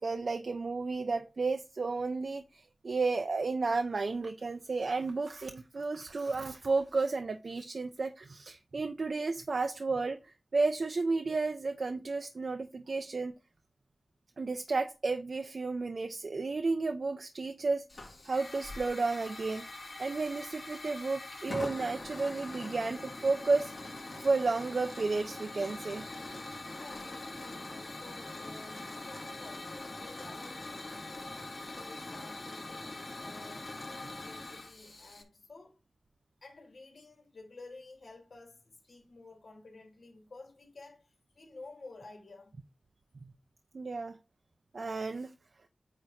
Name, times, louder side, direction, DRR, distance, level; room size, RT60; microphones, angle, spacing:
voice 1, 0.0-13.3 14.4-17.8 18.2-19.7 20.0-23.7 24.2-26.1 43.7-44.2 44.7-45.3, right 3 dB, 70° right, 0.7 m, -32 dB
Hiss / Fire, 17.9-35.2, left 2 dB, 50° left, 2.8 m, -43 dB
voice 2, 26.7-31.4 31.7-35.8 36.4-42.6, left 3 dB, 75° left, 2.9 m, -52 dB
9.0 x 3.1 x 5.6 m
wide cardioid pair, 80°, 0 cm